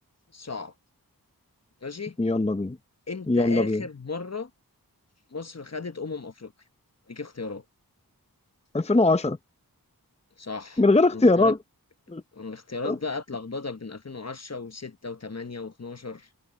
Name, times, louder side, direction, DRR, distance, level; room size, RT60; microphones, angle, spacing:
voice 1, 0.3-0.7 1.8-2.2 3.1-4.5 5.3-6.5 7.1-7.6 10.4-10.8 11.1-11.5 12.3-16.4, left 4 dB, 45° left, 1.0 m, -35 dB
voice 2, 2.2-2.8 3.3-3.8 8.7-9.4 10.8-11.6 12.1-12.2 12.8-13.0, left 2 dB, 15° left, 0.7 m, -21 dB
wide cardioid pair, 45°, 37 cm